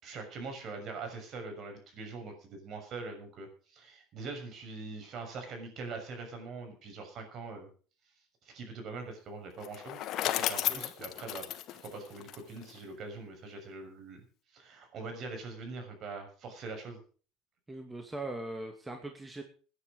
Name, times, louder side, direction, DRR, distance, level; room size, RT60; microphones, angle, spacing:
voice 1, 0.0-7.7 8.4-11.4 11.7-14.2 14.5-17.0, right 3 dB, 50° right, 5 dB, 6.3 m, -43 dB
Bicycle, 9.6-12.8, left 12 dB, 55° left, 1.5 m, -34 dB
voice 2, 17.7-19.4, right 2 dB, 15° right, 4 dB, 2.3 m, -40 dB
17.0 x 9.9 x 5.2 m, 0.40 s
supercardioid pair, 85°, 0 cm